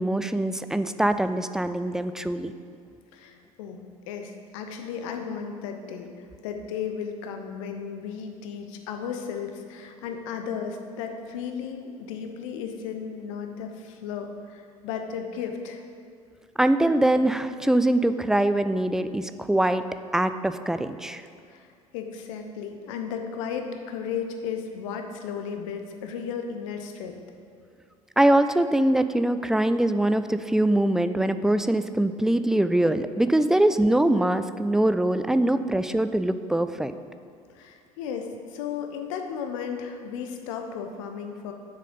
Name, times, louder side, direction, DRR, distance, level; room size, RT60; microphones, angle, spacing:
voice 1, 0.0-2.5 16.6-19.8 20.1-21.2 28.2-36.9, right 1 dB, 5° right, 11 dB, 0.3 m, -23 dB
voice 2, 3.1-15.8 21.5-27.2 37.5-41.5, left 7 dB, 65° left, 5 dB, 0.9 m, -35 dB
7.4 x 6.5 x 5.3 m, 2.3 s
figure-of-eight pair, 60°, 18 cm